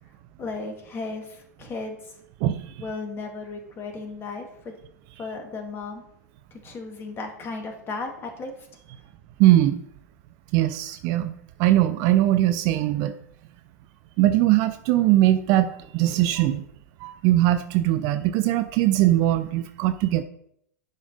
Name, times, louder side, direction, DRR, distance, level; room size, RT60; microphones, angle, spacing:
voice 1, 0.4-2.2 2.8-4.7 5.2-6.0 6.5-8.7, left 3 dB, 25° left, 4 dB, 2.2 m, -35 dB
voice 2, 9.4-9.9 10.5-11.3 11.6-13.2 14.2-16.6 17.0-20.2, right 14 dB, 40° right, 10 dB, 0.6 m, -21 dB
10.5 x 5.2 x 5.3 m, 0.72 s
figure-of-eight pair, 95°, 10 cm